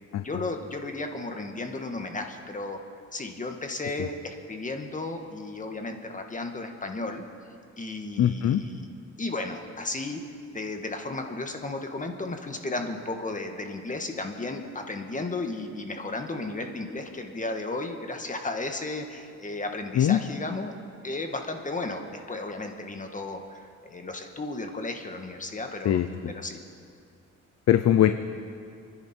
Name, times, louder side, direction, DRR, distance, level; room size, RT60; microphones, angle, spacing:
voice 1, 0.1-2.8 3.1-7.2 7.8-8.9 9.2-10.2 10.5-20.7 21.0-26.0 26.3-26.6, left 2 dB, 25° left, 4 dB, 1.8 m, -34 dB
voice 2, 8.2-8.6 19.9-20.2 25.8-26.3 27.7-28.1, left 11 dB, 60° left, 9 dB, 0.7 m, -21 dB
28.5 x 10.5 x 4.5 m, 2.3 s
cardioid pair, 90°, 30 cm